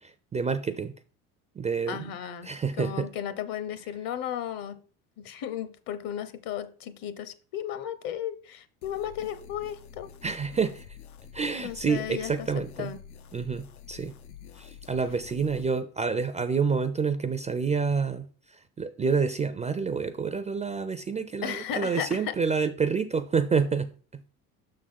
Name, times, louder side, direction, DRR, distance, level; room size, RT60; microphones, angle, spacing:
voice 1, 0.0-0.9 1.6-2.0 2.4-3.1 10.2-10.9 11.3-12.9 13.3-14.1 14.6-24.2, right 5 dB, 15° right, 0.4 m, -28 dB
voice 2, 1.9-2.5 2.8-4.8 5.2-10.1 11.6-12.3 12.8-13.0 21.4-22.3, left 10 dB, 50° left, 0.9 m, -34 dB
sound 1, 8.8-15.7, left 8 dB, 85° left, 0.7 m, -48 dB
6.2 x 3.8 x 5.7 m
hypercardioid pair, 80°, 43 cm